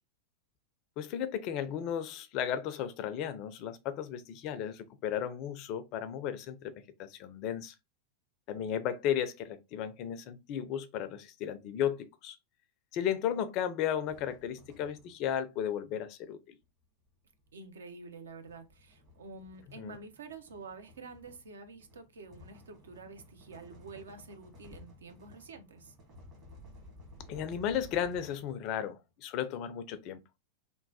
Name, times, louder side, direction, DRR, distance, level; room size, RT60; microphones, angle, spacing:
voice 1, 1.0-6.7 7.0-7.7 8.5-12.4 12.9-16.5 19.8-20.0 27.3-30.2, left 9 dB, 40° left, 0.4 m, -34 dB
sound 1, 14.1-15.4 16.6-28.8, left 1 dB, 35° right, 1.2 m, -55 dB
voice 2, 17.5-25.9, right 4 dB, 65° right, 0.5 m, -48 dB
3.0 x 2.1 x 2.6 m
figure-of-eight pair, 90°, 0 cm